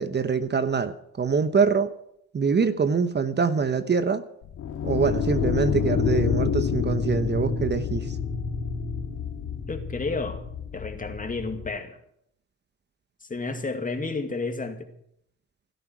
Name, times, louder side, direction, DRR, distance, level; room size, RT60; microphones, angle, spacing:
voice 1, 0.0-1.9 2.3-4.2 4.8-8.2, right 5 dB, 35° right, 11 dB, 1.1 m, -24 dB
sound 1, 4.4-11.7, left 6 dB, 80° left, 2.5 m, -28 dB
voice 2, 9.7-10.4 10.7-12.0 13.3-14.9, left 3 dB, 25° left, 6 dB, 2.3 m, -31 dB
16.5 x 12.5 x 6.2 m, 0.73 s
cardioid pair, 90°, 30 cm